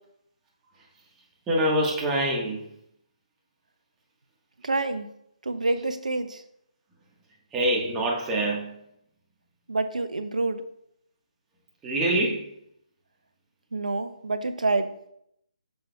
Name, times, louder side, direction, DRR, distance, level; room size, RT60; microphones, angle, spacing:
voice 1, 1.5-2.7 7.5-8.7 11.8-12.5, right 1 dB, 10° right, -2 dB, 1.4 m, -25 dB
voice 2, 4.6-5.1 5.4-6.4 9.7-10.6 13.7-14.9, right 2 dB, 80° right, 10 dB, 0.8 m, -27 dB
8.8 x 6.5 x 2.3 m, 0.73 s
figure-of-eight pair, 150°, 4 cm